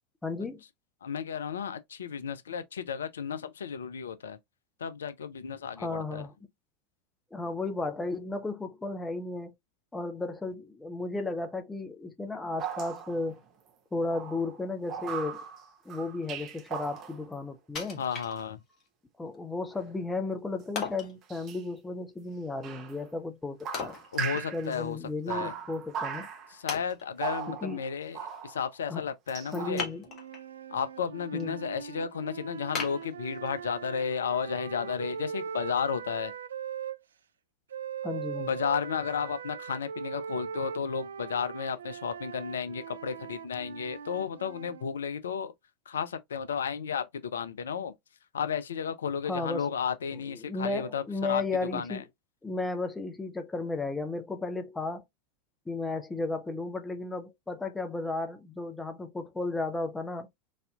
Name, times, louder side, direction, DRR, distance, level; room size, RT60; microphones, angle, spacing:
voice 1, 0.2-0.6 5.8-6.3 7.3-9.5 9.9-13.4 13.9-15.4 15.8-18.0 19.2-23.9 24.5-26.3 27.5-27.8 28.9-29.0 29.4-30.0 31.3-31.6 38.0-38.5 49.3-49.7 50.4-52.0 52.4-55.0 55.7-60.3, left 3 dB, 10° left, 0.7 m, -34 dB
voice 2, 1.0-4.4 4.8-6.3 18.0-18.6 24.1-25.0 25.3-25.5 26.5-29.9 30.7-36.3 38.4-45.5 45.9-47.9 48.3-51.4 51.7-52.0, left 6 dB, 75° left, 0.3 m, -33 dB
sound 1, 12.6-13.4 14.1-17.3 18.1-18.2 21.2-21.6 22.6-23.0 23.6-24.8 25.3-26.6 27.2-28.7 29.3-29.7, right 8 dB, 40° right, 0.8 m, -38 dB
Wood, 17.8-18.9 19.3-19.4 20.8-21.2 23.7-24.9 25.2-25.3 26.0-26.1 26.7-27.4 29.7-30.5 31.0-31.4 31.9-32.0 32.8-33.8 34.2-34.3, left 5 dB, 45° left, 1.5 m, -38 dB
sound 2, 30.0-37.0 37.7-44.9, right 7 dB, 75° right, 0.3 m, -40 dB
4.1 x 2.6 x 2.3 m
figure-of-eight pair, 80°, 0 cm